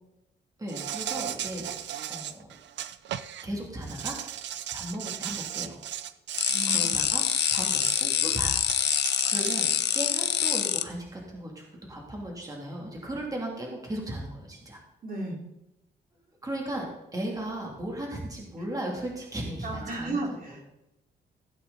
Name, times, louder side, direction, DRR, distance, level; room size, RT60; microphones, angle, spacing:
voice 1, 0.6-1.7 2.1-2.5 3.4-4.2 4.7-5.8 6.7-7.2 7.5-8.6 9.2-14.8 16.4-20.7, right 1 dB, 20° right, -1 dB, 2.9 m, -36 dB
Insect, 0.7-3.4 3.8-8.1 8.7-10.6, right 11 dB, 75° right, 0.6 m, -36 dB
sound 1, 6.4-10.8, left 10 dB, 65° left, 0.8 m, -26 dB
voice 2, 6.5-6.9 15.0-15.4 19.6-20.7, right 2 dB, 50° right, 0 dB, 3.1 m, -34 dB
16.0 x 8.5 x 4.1 m, 0.89 s
cardioid pair, 130°, 19 cm